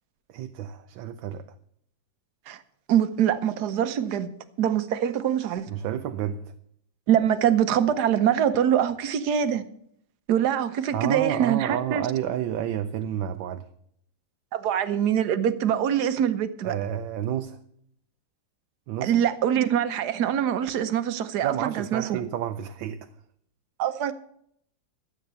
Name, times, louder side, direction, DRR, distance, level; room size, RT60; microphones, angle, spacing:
voice 1, 0.3-1.5 5.7-6.5 10.9-13.7 16.6-17.6 18.9-19.2 21.4-23.1, right 10 dB, 85° right, 1.4 m, -30 dB
voice 2, 2.9-4.3 4.6-5.7 7.1-9.6 10.3-12.1 14.5-16.8 19.0-22.2 23.8-24.1, right 9 dB, 65° right, 1.3 m, -24 dB
13.0 x 8.6 x 6.8 m
omnidirectional pair, 2.1 m